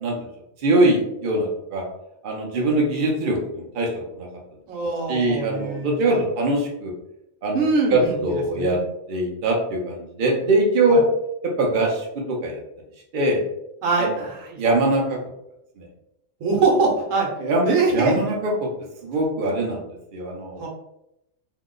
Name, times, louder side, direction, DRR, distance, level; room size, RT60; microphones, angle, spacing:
voice 1, 0.6-1.8 2.2-4.3 5.1-6.9 7.4-8.8 9.1-11.0 11.6-12.6 13.1-13.4 14.0-14.1 14.6-15.2 15.8-15.9 17.4-18.7 19.0-20.7, right 2 dB, 50° right, -1 dB, 0.7 m, -22 dB
voice 2, 4.7-6.2 7.5-8.9 10.9-11.0 13.8-14.6 16.4-17.3 17.6-18.2 20.6-20.7, right 3 dB, 80° right, -2 dB, 1.2 m, -23 dB
2.8 x 2.1 x 3.7 m, 0.82 s
omnidirectional pair, 1.3 m